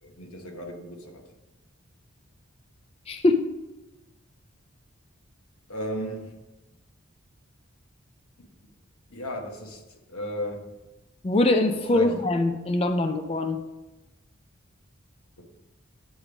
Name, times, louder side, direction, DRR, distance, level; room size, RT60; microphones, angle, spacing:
voice 1, 0.0-1.3 5.7-6.4 9.1-9.8 10.1-10.8 11.9-12.1 15.4-15.7, equal, 90° left, 1.1 m, -35 dB
voice 2, 3.1-3.5 11.2-13.6, left 2 dB, 25° left, 0.3 m, -23 dB
8.4 x 3.4 x 6.0 m
head